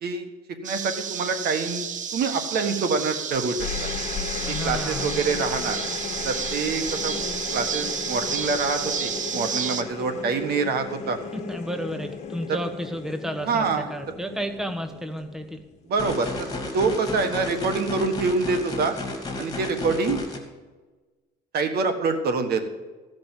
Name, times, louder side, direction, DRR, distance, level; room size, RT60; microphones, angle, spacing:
sound 1, 0.6-9.8, right 7 dB, 50° right, 0.9 m, -31 dB
voice 1, 0.6-1.9 2.1-3.6 4.5-5.8 6.2-7.2 7.5-11.2 13.5-13.9 15.9-16.5 16.7-19.0 19.4-20.2 21.5-22.6, right 4 dB, 65° right, 7 dB, 1.5 m, -25 dB
sound 2, 3.3-15.9 17.2-17.6, left 6 dB, 45° left, 1.5 m, -35 dB
voice 2, 4.4-5.2 11.3-15.6, equal, 5° right, 6 dB, 1.1 m, -32 dB
sound 3, 16.0-20.4, left 2 dB, 20° left, 2.7 m, -33 dB
15.5 x 5.3 x 9.1 m, 1.3 s
cardioid pair, 120°, 17 cm